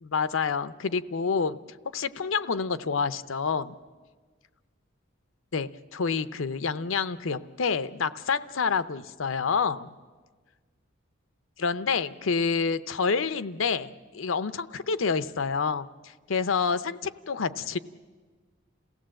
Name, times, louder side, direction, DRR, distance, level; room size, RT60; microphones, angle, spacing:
voice 1, 0.0-1.6 1.9-3.7 5.5-9.9 11.6-15.9 16.3-17.8, left 5 dB, 80° left, 14 dB, 0.7 m, -28 dB
28.0 x 16.0 x 7.7 m, 1.5 s
head